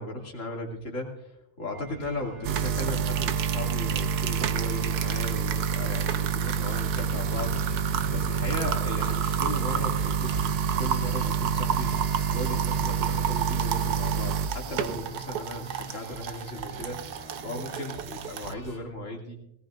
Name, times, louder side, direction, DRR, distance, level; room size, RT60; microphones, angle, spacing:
voice 1, 0.0-19.4, left 1 dB, 55° left, -1 dB, 3.0 m, -37 dB
sound 1, 1.7-18.8, right 1 dB, 20° left, 2.2 m, -46 dB
sound 2, 2.4-18.5, right 7 dB, 90° right, 1.3 m, -28 dB
sound 3, 3.8-16.1 16.4-16.5 16.8-16.9, right 2 dB, 65° right, 3.3 m, -42 dB
19.0 x 17.5 x 2.5 m, 0.81 s
omnidirectional pair, 1.6 m